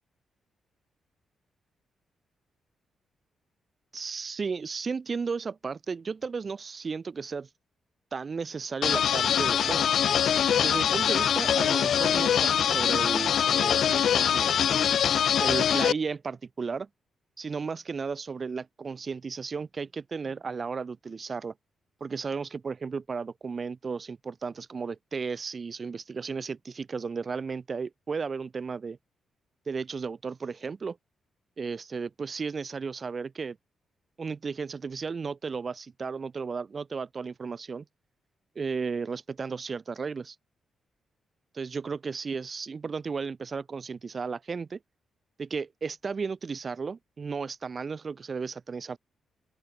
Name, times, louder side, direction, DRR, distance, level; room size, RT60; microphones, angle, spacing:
voice 1, 3.9-7.5 8.1-9.9 10.6-14.5 15.4-16.9 17.4-21.5 22.0-29.0 29.7-31.0 31.6-33.6 34.2-37.8 38.6-40.4 41.5-44.8 45.4-49.0, right 5 dB, 35° right, 3.8 m, -34 dB
sound 1, 8.8-15.9, left 9 dB, 65° left, 0.6 m, -23 dB
open air
cardioid pair, 130°, 0 cm